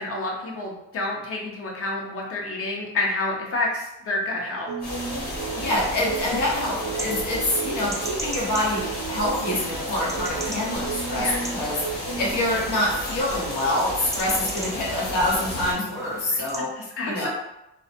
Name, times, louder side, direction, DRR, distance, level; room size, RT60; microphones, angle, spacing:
voice 1, 0.0-4.7 11.2-11.4 16.8-17.3, left 2 dB, 50° left, -1 dB, 0.8 m, -29 dB
sound 1, 4.7-12.4, right 5 dB, 65° right, 0.4 m, -35 dB
sound 2, 4.8-15.7, left 1 dB, 30° left, 1.1 m, -33 dB
voice 2, 5.5-16.7 17.0-17.3, left 1 dB, 80° left, -4 dB, 1.0 m, -26 dB
sound 3, 5.6-16.6, right 2 dB, 10° right, 0.4 m, -40 dB
2.3 x 2.1 x 2.8 m, 0.88 s
cardioid pair, 90°, 30 cm